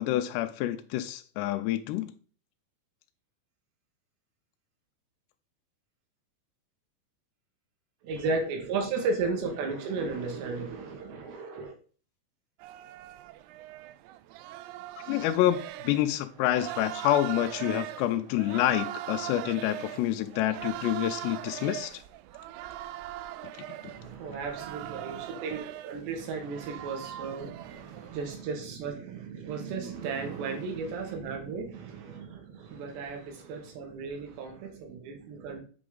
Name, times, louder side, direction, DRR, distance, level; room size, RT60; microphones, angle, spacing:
voice 1, 0.0-2.1 15.1-22.0, left 13 dB, 80° left, 2.6 m, -28 dB
voice 2, 8.0-11.8 23.8-35.6, right 4 dB, 75° right, 3.7 m, -34 dB
sound 1, 12.6-28.4, right 14 dB, 90° right, 2.3 m, -41 dB
7.6 x 6.1 x 3.8 m
omnidirectional pair, 5.2 m